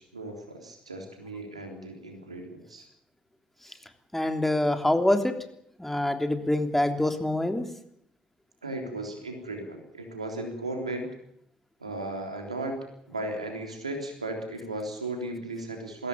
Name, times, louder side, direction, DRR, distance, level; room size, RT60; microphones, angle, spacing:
voice 1, 0.0-2.9 8.6-11.1 11.8-12.8 13.1-16.1, right 2 dB, 90° right, 3 dB, 3.6 m, -36 dB
voice 2, 4.1-5.3 5.8-7.6, left 1 dB, 5° left, 6 dB, 3.2 m, -25 dB
21.5 x 16.5 x 9.0 m, 0.72 s
figure-of-eight pair, 50°, 3 cm